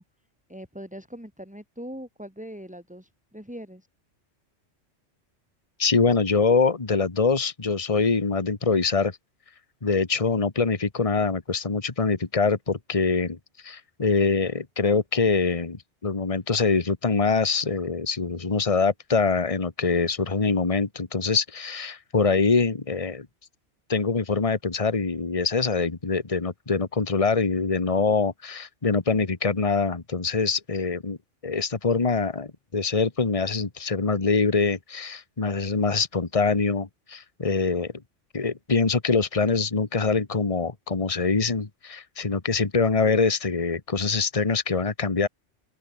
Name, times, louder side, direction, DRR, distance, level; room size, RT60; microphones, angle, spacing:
voice 1, 0.5-3.9, equal, 5° right, 6.1 m, -41 dB
voice 2, 5.8-9.1 9.8-13.4 13.6-23.3 23.9-31.2 31.4-37.9 38.3-45.3, left 4 dB, 30° left, 1.6 m, -24 dB
open air
omnidirectional pair, 1.2 m